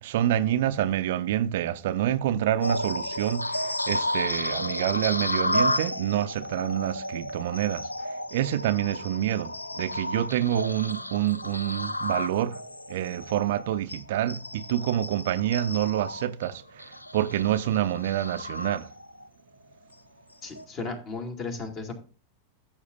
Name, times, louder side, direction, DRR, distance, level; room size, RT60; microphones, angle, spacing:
voice 1, 0.0-12.6 12.9-18.9, right 12 dB, 55° right, 0.5 m, -27 dB
sound 1, 2.6-19.3 19.7-19.9 20.5-20.6, left 1 dB, 85° left, 0.5 m, -32 dB
voice 2, 20.4-22.0, left 3 dB, 35° left, 2.4 m, -35 dB
14.0 x 7.2 x 2.5 m
figure-of-eight pair, 90°, 0 cm